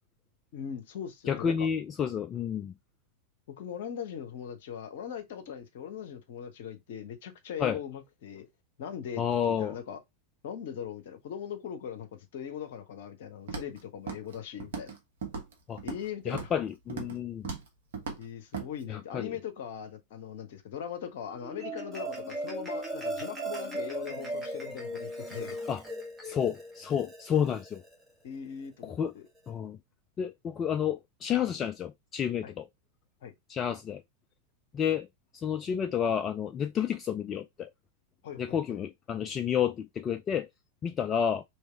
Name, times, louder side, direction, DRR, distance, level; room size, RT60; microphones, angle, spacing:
voice 1, 0.5-1.7 3.5-8.5 8.8-10.0 10.4-15.0 15.8-16.5 18.2-25.6 28.2-29.3 32.4-32.5 33.2-33.3 38.2-38.8, left 8 dB, 55° left, 1.0 m, -40 dB
voice 2, 1.3-2.7 7.6-7.8 9.2-9.7 15.7-15.8 16.3-17.5 18.9-19.4 25.7-25.8 26.2-27.8 28.8-29.1 29.5-29.8 30.2-32.7 33.5-34.0 34.7-35.1 35.3-37.7 38.4-40.5 40.8-41.4, left 8 dB, 25° left, 0.3 m, -30 dB
Walk footsteps, 13.5-13.8 14.1-14.4 14.6-15.0 15.2-16.1 16.3-16.6 16.9-17.2 17.4-17.7 17.9-18.2 18.5-18.7, right 5 dB, 60° right, 1.2 m, -37 dB
Marimba xylophone, 21.3-27.9, right 1 dB, 5° right, 1.5 m, -37 dB
3.3 x 3.1 x 4.4 m
figure-of-eight pair, 90°, 0 cm